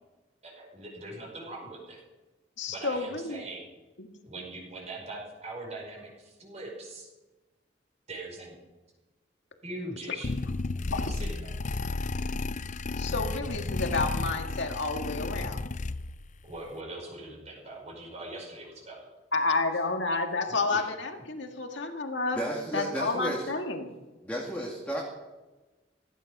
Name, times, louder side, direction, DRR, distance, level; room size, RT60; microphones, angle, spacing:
voice 1, 0.4-2.0 2.7-3.7 4.2-7.1 8.1-8.6 9.6-10.3 11.1-11.7 16.4-19.1 20.5-20.9, right 2 dB, 40° right, -2 dB, 5.5 m, -41 dB
voice 2, 2.6-3.4 4.0-4.1 10.9-11.0 13.0-15.7 19.3-22.4 22.7-23.9, left 3 dB, 75° left, 4 dB, 1.9 m, -30 dB
sound 1, 10.2-16.3, left 3 dB, 40° left, 0.5 m, -33 dB
voice 3, 22.4-23.5 24.2-25.0, equal, 10° left, -2 dB, 2.4 m, -33 dB
17.0 x 15.0 x 5.5 m, 1.1 s
head